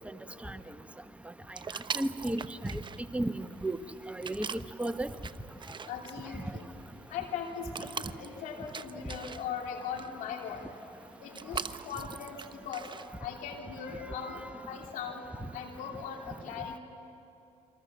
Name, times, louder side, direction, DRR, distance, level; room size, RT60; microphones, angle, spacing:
sound 1, 1.5-13.2, right 5 dB, 35° right, 0.8 m, -43 dB
voice 1, 1.9-2.8 3.1-3.8 4.1-5.1, right 1 dB, 10° right, 8 dB, 1.2 m, -33 dB
voice 2, 5.8-6.7 7.1-10.7 11.2-12.9 13.2-15.2 15.5-16.8, left 7 dB, 85° left, 2 dB, 3.1 m, -39 dB
28.5 x 24.0 x 7.0 m, 2.8 s
supercardioid pair, 65°, 13 cm